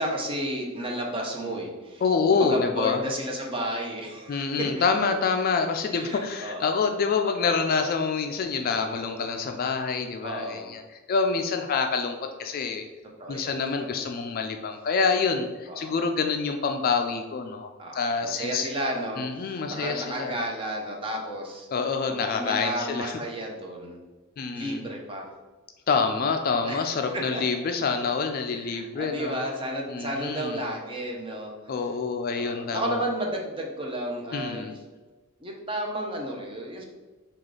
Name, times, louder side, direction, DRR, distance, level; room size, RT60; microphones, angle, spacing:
voice 1, 0.0-2.0 2.3-4.8 5.9-6.7 10.2-10.7 13.2-13.5 13.8-14.0 15.7-15.9 17.8-21.7 22.1-24.0 24.5-25.3 26.7-27.4 28.5-31.8 32.3-34.8 35.4-36.8, right 1 dB, 25° right, 1 dB, 0.6 m, -32 dB
voice 2, 2.0-3.0 4.3-12.8 13.3-18.7 19.2-20.4 21.7-23.2 24.4-24.8 25.9-29.5 29.9-30.7 31.7-33.0 34.3-34.7, left 5 dB, 45° left, 5 dB, 0.3 m, -27 dB
4.9 x 2.4 x 3.7 m, 1.2 s
head